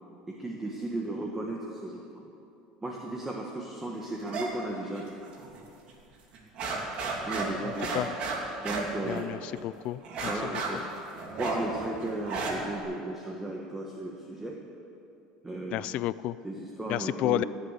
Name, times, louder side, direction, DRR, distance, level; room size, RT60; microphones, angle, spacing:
voice 1, 0.3-2.3 2.8-5.2 7.3-8.1 8.6-9.3 10.2-10.9 11.4-14.6 15.4-15.9 16.4-17.5, right 1 dB, 10° right, -1 dB, 1.4 m, -35 dB
sound 1, 4.2-4.5 4.8-5.6 5.9-6.0 6.3-9.6 10.0-12.8, right 3 dB, 50° right, 2.7 m, -34 dB
voice 2, 7.6-8.1 9.1-10.5 15.7-16.4 16.9-17.4, left 15 dB, 55° left, 17 dB, 0.3 m, -31 dB
17.5 x 8.1 x 8.2 m, 2.7 s
supercardioid pair, 125°, 2 cm